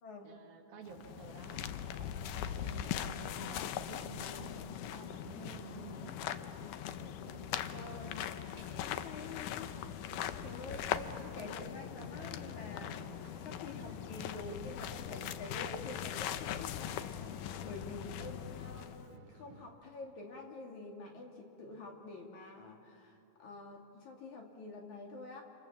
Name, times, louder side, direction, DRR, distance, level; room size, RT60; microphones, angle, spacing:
voice 1, 0.2-1.7 2.4-6.1, right 5 dB, 70° right, 2 dB, 3.9 m, -51 dB
sound 1, 0.9-19.1, left 10 dB, 75° left, 2.0 m, -41 dB
sound 2, 1.9-19.7, right 4 dB, 90° right, 3.7 m, -56 dB
voice 2, 7.6-8.2 8.8-9.7 10.2-12.9 13.4-17.4 17.6-25.4, left 3 dB, 50° left, 1 dB, 3.5 m, -48 dB
sound 3, 8.5-18.0, left 1 dB, 20° left, 7.9 m, -62 dB
29.5 x 27.5 x 7.3 m, 2.6 s
omnidirectional pair, 4.5 m